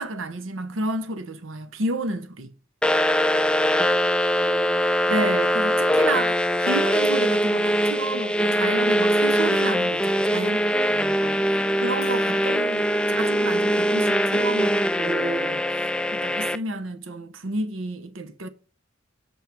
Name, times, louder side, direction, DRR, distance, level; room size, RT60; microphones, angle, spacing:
voice 1, 0.0-2.5 5.1-10.6 10.9-18.5, right 2 dB, 90° right, 0.9 m, -31 dB
sound 1, 2.8-16.6, equal, 5° left, 0.3 m, -22 dB
voice 2, 2.9-5.0 9.9-11.1, equal, 15° right, 2.2 m, -49 dB
Bell, 12.0-14.2, left 7 dB, 30° left, 1.5 m, -47 dB
7.3 x 5.9 x 7.3 m
head